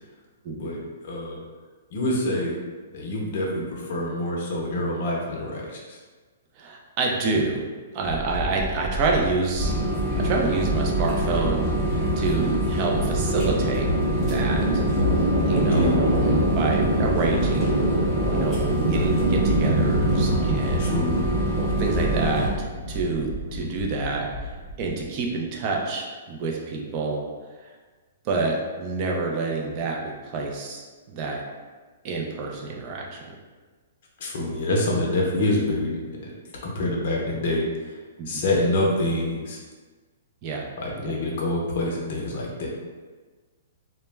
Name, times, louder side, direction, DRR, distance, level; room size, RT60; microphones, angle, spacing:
voice 1, 0.5-1.4 1.9-2.5 2.9-6.0 15.6-15.9 20.8-21.2 34.2-36.0 36.6-37.9 38.3-39.6 40.8-42.7, left 1 dB, 50° left, -3 dB, 0.6 m, -26 dB
voice 2, 6.6-7.7 7.9-9.7 10.2-11.7 12.2-13.9 14.2-14.8 15.5-15.9 16.5-17.8 18.3-20.9 21.6-24.5 24.8-27.2 27.6-27.7 28.2-31.4 32.0-33.2 38.2-38.4 40.4-40.7 41.0-41.1, right 3 dB, 35° right, 0 dB, 0.4 m, -28 dB
sound 1, 8.1-25.0, right 1 dB, 85° right, 0.8 m, -27 dB
sound 2, 9.6-22.5, right 1 dB, 10° right, 0.8 m, -25 dB
2.2 x 2.0 x 3.2 m, 1.4 s
hypercardioid pair, 155°, 0 cm